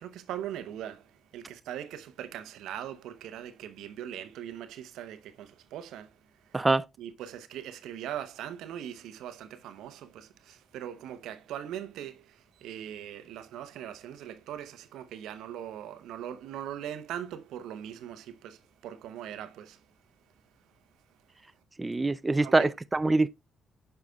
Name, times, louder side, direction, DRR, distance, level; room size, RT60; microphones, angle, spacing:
voice 1, 0.0-6.6 7.0-19.9 22.4-22.7, right 10 dB, 75° right, 0.7 m, -41 dB
voice 2, 6.5-6.8 21.8-23.3, right 3 dB, 25° right, 0.4 m, -24 dB
9.0 x 5.6 x 2.3 m
hypercardioid pair, 55°, 0 cm